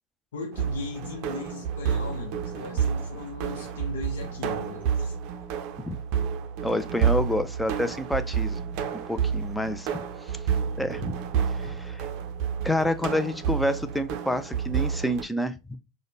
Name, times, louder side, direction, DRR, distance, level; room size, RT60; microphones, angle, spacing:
voice 1, 0.3-5.2, left 4 dB, 85° left, 0.6 m, -38 dB
sound 1, 0.5-15.2, right 7 dB, 55° right, 0.4 m, -29 dB
voice 2, 6.6-10.4 10.8-11.2 11.5-12.1 12.6-15.8, left 1 dB, 5° left, 0.4 m, -29 dB
4.8 x 2.1 x 2.6 m
supercardioid pair, 120°, 0 cm